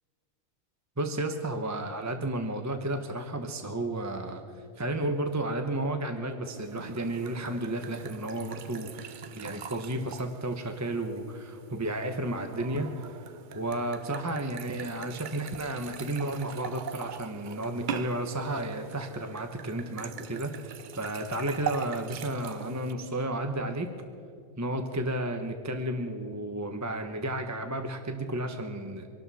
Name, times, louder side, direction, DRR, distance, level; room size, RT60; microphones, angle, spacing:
voice 1, 1.0-4.4 4.8-8.9 9.3-13.2 13.5-23.9 24.6-29.1, right 1 dB, 15° right, 5 dB, 0.8 m, -32 dB
sound 1, 6.5-22.9, right 8 dB, 60° right, 0.5 m, -42 dB
25.0 x 12.0 x 4.2 m, 2.5 s
omnidirectional pair, 1.4 m